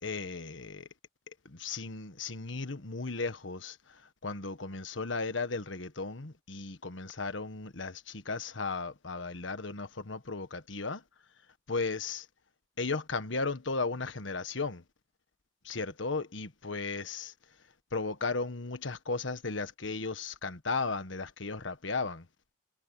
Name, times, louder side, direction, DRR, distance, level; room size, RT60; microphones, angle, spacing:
voice 1, 0.0-0.9 1.4-11.0 11.7-12.3 12.8-14.8 15.6-17.3 17.9-22.2, left 4 dB, 75° left, 1.5 m, -35 dB
head